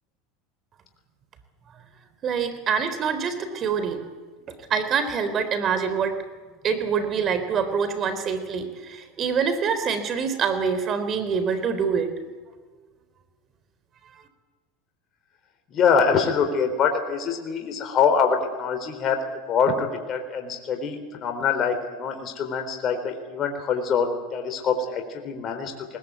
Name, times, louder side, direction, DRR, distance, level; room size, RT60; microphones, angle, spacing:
voice 1, 2.2-4.0 4.5-6.2 6.6-12.1, right 6 dB, 40° right, 10 dB, 3.9 m, -25 dB
voice 2, 15.7-19.2 19.5-26.0, left 6 dB, 40° left, 5 dB, 3.7 m, -24 dB
20.5 x 20.0 x 8.3 m, 1.4 s
supercardioid pair, 100°, 0 cm